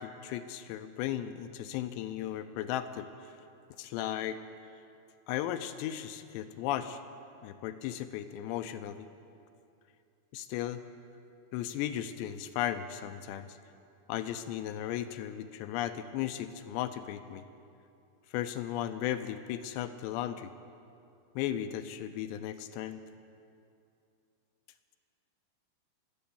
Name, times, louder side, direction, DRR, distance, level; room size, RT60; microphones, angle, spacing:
voice 1, 0.0-3.1 3.8-4.4 5.3-7.0 7.4-9.1 10.3-10.8 11.5-13.6 14.1-17.4 18.3-20.5 21.4-23.0, left 11 dB, 85° left, 10 dB, 2.7 m, -36 dB
23.5 x 8.7 x 7.1 m, 2.6 s
omnidirectional pair, 5.1 m